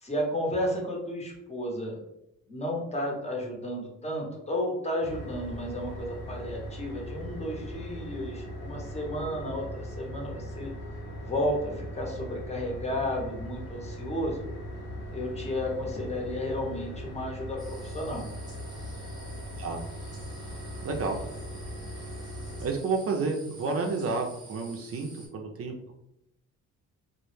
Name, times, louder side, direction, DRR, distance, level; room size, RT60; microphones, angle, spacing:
voice 1, 0.0-2.0 2.5-10.7 11.2-14.4 15.1-18.2, left 1 dB, 20° left, -1 dB, 0.7 m, -32 dB
sound 1, 5.0-22.8, equal, 90° left, 0.8 m, -39 dB
sound 2, 17.6-25.3, right 2 dB, 15° right, 0.9 m, -51 dB
voice 2, 20.8-21.2 22.6-25.9, right 4 dB, 50° right, 2 dB, 0.4 m, -30 dB
2.0 x 2.0 x 3.1 m, 0.83 s
cardioid pair, 90°, 30 cm